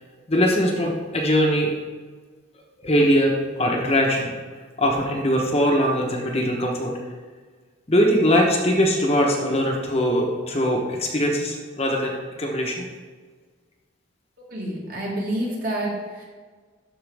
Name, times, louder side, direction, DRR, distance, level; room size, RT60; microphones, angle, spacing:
voice 1, 0.3-1.7 2.8-4.3 4.8-7.1 7.9-12.9, equal, 30° left, 0 dB, 0.9 m, -21 dB
voice 2, 14.5-16.2, right 1 dB, 45° right, -4 dB, 1.9 m, -28 dB
12.5 x 4.5 x 3.4 m, 1.5 s
head